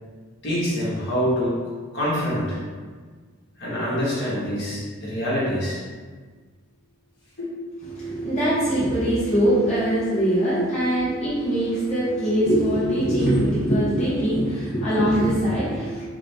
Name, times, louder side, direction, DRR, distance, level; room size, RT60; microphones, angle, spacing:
voice 1, 0.4-1.6 1.9-2.6 3.6-5.8 7.4-7.5, equal, 55° left, -7 dB, 1.5 m, -25 dB
voice 2, 7.8-16.1, right 1 dB, 35° left, -11 dB, 1.0 m, -22 dB
4.1 x 3.7 x 3.4 m, 1.5 s
head